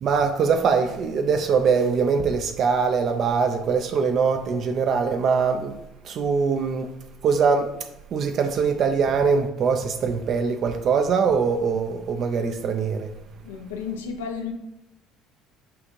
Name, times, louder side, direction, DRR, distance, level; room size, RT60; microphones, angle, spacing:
voice 1, 0.0-5.8 6.0-6.9 7.2-7.7 8.1-13.1, right 5 dB, 55° right, 0.4 m, -22 dB
voice 2, 13.4-14.5, left 6 dB, 85° left, 0.6 m, -32 dB
6.0 x 2.4 x 3.1 m
hypercardioid pair, 65°, 0 cm